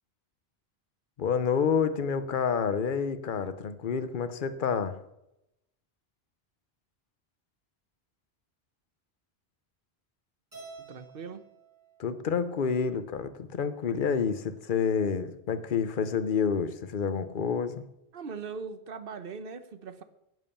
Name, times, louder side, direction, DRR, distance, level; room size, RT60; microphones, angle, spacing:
voice 1, 1.2-5.0 12.0-17.8, left 6 dB, 55° left, 12 dB, 1.0 m, -28 dB
Keyboard (musical), 10.5-12.9, right 4 dB, 35° right, 5.1 m, -51 dB
voice 2, 10.8-11.5 18.1-20.0, right 5 dB, 60° right, 11 dB, 1.1 m, -40 dB
11.0 x 9.5 x 7.0 m, 0.86 s
omnidirectional pair, 1.1 m